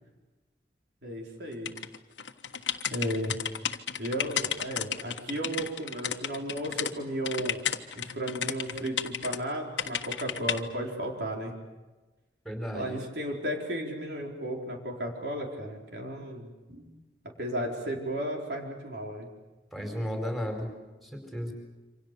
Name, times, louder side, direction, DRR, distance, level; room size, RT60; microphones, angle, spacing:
voice 1, 1.0-1.7 2.9-3.3 4.0-7.6 8.0-11.5 12.7-16.9 17.4-19.3 19.8-19.9, right 1 dB, 65° right, 0 dB, 4.5 m, -34 dB
sound 1, 1.7-6.9 7.3-9.4 9.8-10.6, left 8 dB, 85° left, 1.4 m, -33 dB
voice 2, 12.4-13.0 19.7-20.7 21.0-21.5, equal, ahead, 3 dB, 4.8 m, -34 dB
28.0 x 25.5 x 6.9 m, 1.2 s
head